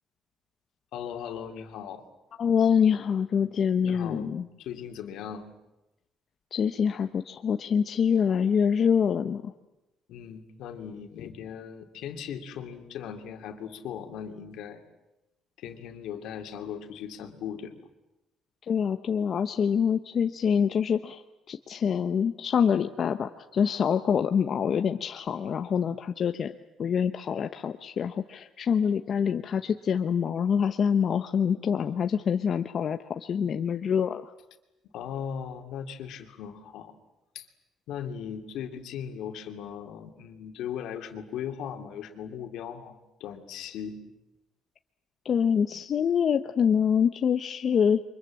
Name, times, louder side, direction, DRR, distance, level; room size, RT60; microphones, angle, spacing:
voice 1, 0.9-2.0 3.8-4.3 4.6-5.5 10.1-14.8 15.6-17.7 34.9-36.9 37.3-37.5 37.9-44.0, left 8 dB, 75° left, 5 dB, 2.7 m, -38 dB
voice 2, 2.4-4.5 6.5-9.5 18.6-21.2 21.5-26.5 26.8-34.3 45.2-48.0, left 7 dB, 45° left, 8 dB, 0.9 m, -25 dB
29.5 x 24.0 x 7.6 m, 0.97 s
cardioid pair, 130°, 0 cm